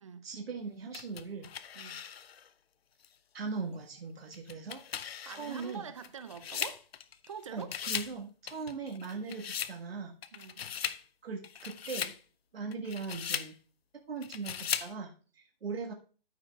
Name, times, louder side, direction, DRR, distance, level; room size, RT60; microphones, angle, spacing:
voice 1, 0.2-1.5 3.3-4.8 5.3-5.9 7.5-10.1 11.2-12.1 12.5-13.6 14.1-15.9, right 4 dB, 80° right, 1.7 m, -39 dB
sound 1, 0.9-2.5 3.0-3.1 4.3-7.3 7.6-8.2 8.5-9.8 10.2-11.0 11.4-12.2 12.7-13.5 14.2-14.9, left 8 dB, 90° left, 0.6 m, -38 dB
voice 2, 5.2-6.8 7.3-7.7 10.3-10.7, right 7 dB, 35° right, 0.5 m, -45 dB
13.5 x 5.4 x 2.4 m
hypercardioid pair, 165°, 29 cm